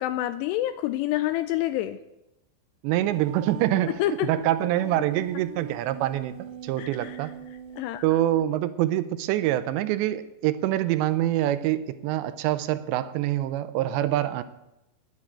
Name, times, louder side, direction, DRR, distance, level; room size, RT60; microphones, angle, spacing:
voice 1, 0.0-2.0 3.9-4.3 6.8-7.2 7.8-8.0, left 14 dB, 85° left, 11 dB, 2.5 m, -27 dB
voice 2, 2.8-6.3 6.6-7.4 8.0-14.4, right 13 dB, 80° right, 12 dB, 2.8 m, -25 dB
sound 1, 3.1-8.3, right 6 dB, 55° right, 2.5 m, -42 dB
9.8 x 9.6 x 9.0 m, 0.89 s
omnidirectional pair, 5.2 m